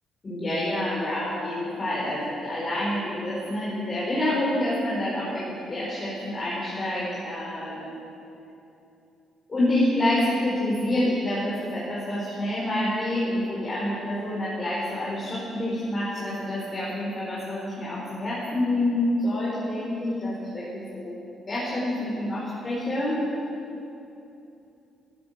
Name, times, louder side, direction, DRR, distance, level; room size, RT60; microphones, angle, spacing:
voice 1, 0.2-8.1 9.5-21.1 21.5-23.2, left 1 dB, 35° left, -7 dB, 4.3 m, -27 dB
14.0 x 12.5 x 7.4 m, 2.8 s
cardioid pair, 90°, 0 cm